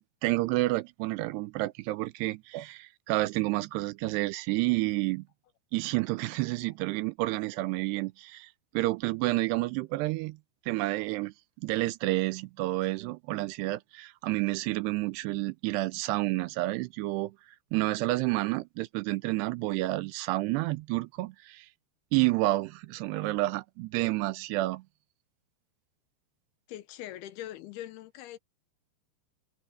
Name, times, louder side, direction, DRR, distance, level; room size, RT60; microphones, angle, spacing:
voice 1, 0.0-5.2 5.7-10.4 10.7-17.4 17.7-21.7 22.1-24.8, right 19 dB, 85° right, 2.7 m, -30 dB
voice 2, 26.7-28.4, left 13 dB, 80° left, 2.6 m, -42 dB
omnidirectional pair, 4.9 m